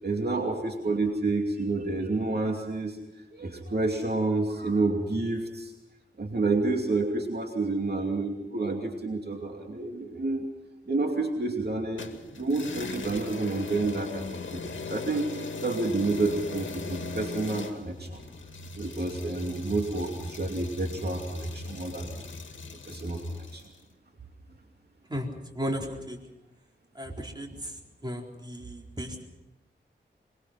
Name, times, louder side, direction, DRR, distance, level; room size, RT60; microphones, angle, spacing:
voice 1, 0.0-3.0 3.3-5.7 6.2-10.5 10.9-15.3 15.6-18.2 18.7-22.2 22.9-23.6, right 3 dB, 55° right, 2 dB, 2.7 m, -29 dB
sound 1, 12.0-23.7, left 4 dB, 80° left, 2.1 m, -39 dB
voice 2, 25.5-26.2 26.9-29.3, equal, 20° right, 0 dB, 4.1 m, -35 dB
23.5 x 22.5 x 5.9 m, 0.98 s
wide cardioid pair, 75°, 20 cm